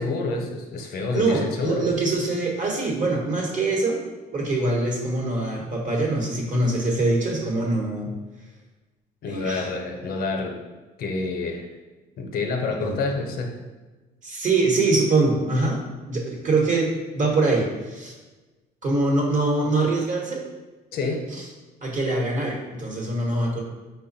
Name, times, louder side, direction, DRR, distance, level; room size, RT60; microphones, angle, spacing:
voice 1, 0.0-1.9 9.2-10.6 11.0-11.7 12.2-13.5 20.9-21.3, left 3 dB, 65° left, 3 dB, 0.7 m, -28 dB
voice 2, 1.1-4.0 4.3-8.1 9.3-9.7 12.7-13.0 14.2-15.8 16.1-18.1 18.8-20.4 21.8-23.6, right 2 dB, 50° right, -1 dB, 1.2 m, -23 dB
5.0 x 2.2 x 4.0 m, 1.2 s
cardioid pair, 110°, 17 cm